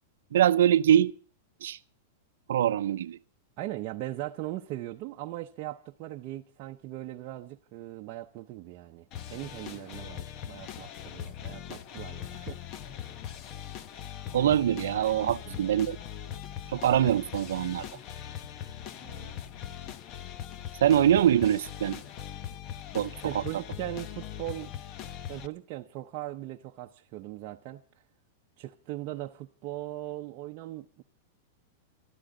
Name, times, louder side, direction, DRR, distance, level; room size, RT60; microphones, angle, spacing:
voice 1, 0.3-1.1 1.6-1.8 2.5-3.2 14.3-16.0 16.7-17.9 20.8-22.0 22.9-23.4, right 10 dB, 80° right, 0.6 m, -23 dB
voice 2, 3.6-12.6 15.1-15.7 19.0-19.4 23.2-24.7 25.3-27.8 28.6-31.0, right 15 dB, 40° right, 0.8 m, -39 dB
sound 1, 9.1-25.5, left 10 dB, 35° left, 0.9 m, -41 dB
24.0 x 13.0 x 3.8 m
supercardioid pair, 155°, 0 cm